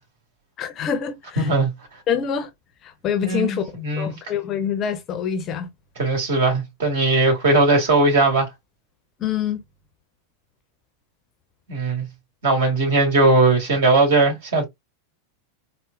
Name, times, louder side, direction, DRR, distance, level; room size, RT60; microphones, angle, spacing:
voice 1, 0.6-1.5 2.1-2.5 2.8-5.7 9.2-9.6, left 8 dB, 30° left, 0.6 m, -26 dB
voice 2, 3.2-4.1 6.0-8.5 11.7-12.1 12.4-14.6, right 3 dB, 55° right, 2.0 m, -19 dB
4.1 x 2.1 x 2.4 m
figure-of-eight pair, 90°, 0 cm